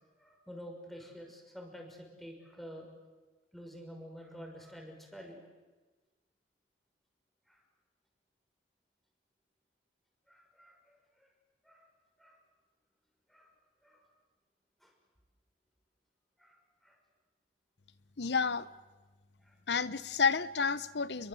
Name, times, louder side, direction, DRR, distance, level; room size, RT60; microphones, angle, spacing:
voice 1, 0.0-2.9 3.5-5.4 7.5-7.6 10.3-11.3 11.6-11.9 12.2-12.4 13.3-13.5 13.8-14.1 14.8-14.9 16.4-17.0 19.4-19.6, equal, ahead, 1 dB, 5.9 m, -49 dB
voice 2, 18.2-18.7 19.7-21.3, left 5 dB, 70° left, 16 dB, 1.0 m, -30 dB
30.0 x 23.0 x 7.9 m, 1.2 s
head